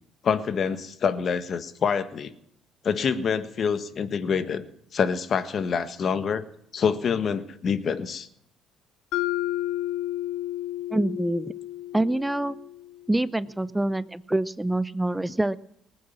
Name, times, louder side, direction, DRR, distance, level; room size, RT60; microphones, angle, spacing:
voice 1, 0.2-2.3 2.8-4.6 4.9-6.4 6.7-8.3, left 6 dB, 50° left, 12 dB, 1.5 m, -26 dB
Mallet percussion, 9.1-13.1, left 14 dB, 75° left, 1.0 m, -31 dB
voice 2, 10.9-11.5 11.9-12.6 13.1-15.6, right 1 dB, 10° right, 18 dB, 0.7 m, -26 dB
19.5 x 8.8 x 7.3 m, 0.71 s
supercardioid pair, 70°, 0 cm